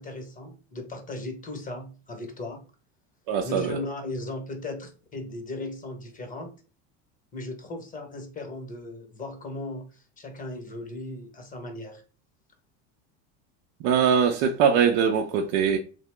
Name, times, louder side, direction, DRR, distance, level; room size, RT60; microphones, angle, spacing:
voice 1, 0.0-2.6 3.4-6.5 7.3-12.0, left 2 dB, 20° left, 0.9 m, -37 dB
voice 2, 3.3-3.8 13.8-15.8, right 7 dB, 65° right, 0.6 m, -22 dB
2.8 x 2.0 x 3.2 m
supercardioid pair, 95°, 37 cm